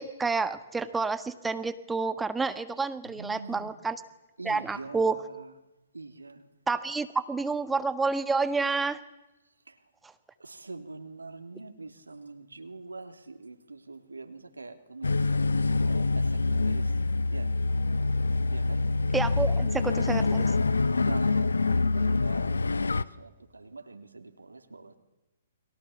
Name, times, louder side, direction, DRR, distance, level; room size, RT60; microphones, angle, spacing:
voice 1, 0.0-4.0 4.4-5.2 6.7-9.0 19.1-20.4, right 4 dB, 10° right, 10 dB, 1.5 m, -29 dB
voice 2, 3.0-3.8 4.4-5.5 5.9-6.4 9.7-9.8 10.4-16.9 17.3-17.5 18.5-18.8 21.0-25.0, right 3 dB, 80° right, 6 dB, 2.7 m, -44 dB
sound 1, 15.0-23.0, left 3 dB, 75° left, 0.9 m, -26 dB
29.5 x 22.5 x 7.2 m, 1.0 s
figure-of-eight pair, 120°, 0 cm